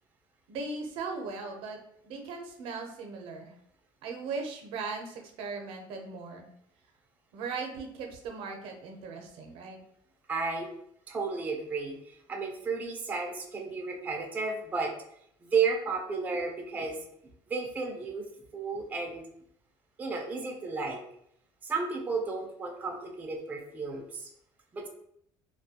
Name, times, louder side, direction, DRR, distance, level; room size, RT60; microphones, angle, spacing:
voice 1, 0.5-3.5 4.0-6.5 7.3-9.8, right 4 dB, 80° right, 3 dB, 0.5 m, -38 dB
voice 2, 10.3-10.7 11.1-14.9 15.4-17.0 17.5-18.3 18.5-19.2 20.0-21.0 21.6-24.3 24.7-24.9, right 4 dB, 15° right, 1 dB, 0.3 m, -33 dB
2.3 x 2.1 x 2.7 m, 0.71 s
cardioid pair, 155°, 9 cm